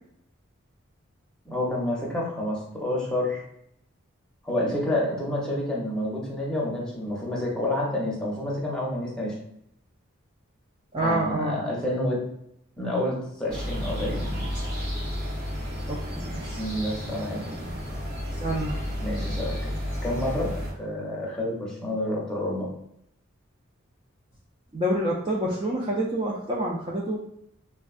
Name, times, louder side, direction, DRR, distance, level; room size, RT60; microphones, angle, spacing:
voice 1, 1.5-3.4 4.4-9.4 11.0-12.2 12.8-14.5 16.6-17.4 19.0-19.7 20.0-20.5 20.8-22.7, left 1 dB, 5° left, -5 dB, 0.7 m, -29 dB
voice 2, 10.9-11.6 15.9-16.6 17.3-17.7 18.3-18.8 24.7-27.2, right 1 dB, 25° right, -4 dB, 0.3 m, -28 dB
sound 1, 13.5-20.7, equal, 45° right, 1.0 m, -32 dB
3.4 x 2.2 x 2.3 m, 0.74 s
head